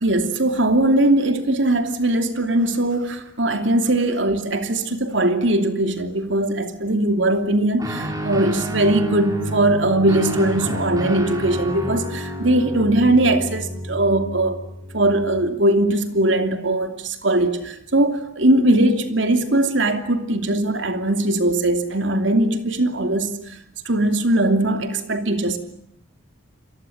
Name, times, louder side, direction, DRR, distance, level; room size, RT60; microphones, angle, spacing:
voice 1, 0.0-14.6 14.9-23.6 23.8-25.6, right 1 dB, 60° right, 7 dB, 2.8 m, -20 dB
Guitar, 7.8-15.5, right 1 dB, 15° right, 4.1 m, -30 dB
29.5 x 23.5 x 7.9 m, 0.69 s
head